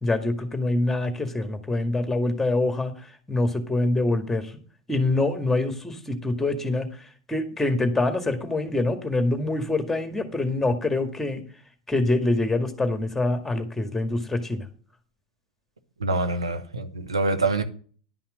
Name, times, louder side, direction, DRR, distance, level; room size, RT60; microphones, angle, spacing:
voice 1, 0.0-2.9 3.3-4.5 4.9-6.9 7.3-11.4 11.9-14.6, left 2 dB, 10° left, 1.9 m, -25 dB
voice 2, 16.0-17.6, right 3 dB, 85° right, 1.1 m, -25 dB
11.0 x 5.7 x 6.4 m
figure-of-eight pair, 85°, 3 cm